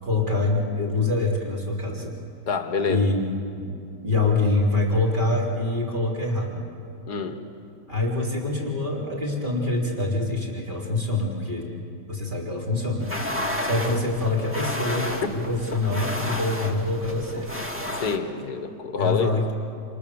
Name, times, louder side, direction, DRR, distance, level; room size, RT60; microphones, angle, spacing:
voice 1, 0.0-2.1 2.8-3.2 3.5-3.7 4.0-6.6 7.9-11.7 12.1-13.1 13.6-17.5 19.0-19.5, left 2 dB, 25° right, -2 dB, 3.7 m, -25 dB
voice 2, 2.5-3.1 7.1-7.4 18.0-19.4, left 5 dB, 55° left, 7 dB, 2.0 m, -27 dB
sound 1, 13.0-18.2, left 1 dB, 5° right, 1.8 m, -31 dB
29.5 x 27.5 x 7.1 m, 2.6 s
omnidirectional pair, 2.1 m